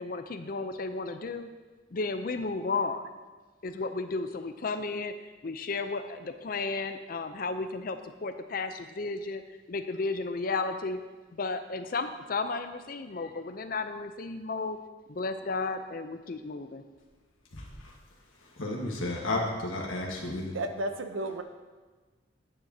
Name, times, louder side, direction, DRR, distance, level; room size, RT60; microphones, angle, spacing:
voice 1, 0.0-1.5 1.9-3.1 3.6-5.1 5.4-9.4 9.7-11.0 11.3-14.8 15.1-16.8, left 3 dB, 45° left, 0.5 m, -33 dB
voice 2, 17.5-17.9 18.6-20.6, left 2 dB, 90° left, 1.5 m, -32 dB
voice 3, 20.5-21.4, right 2 dB, 90° right, 0.8 m, -32 dB
9.8 x 9.1 x 2.8 m
head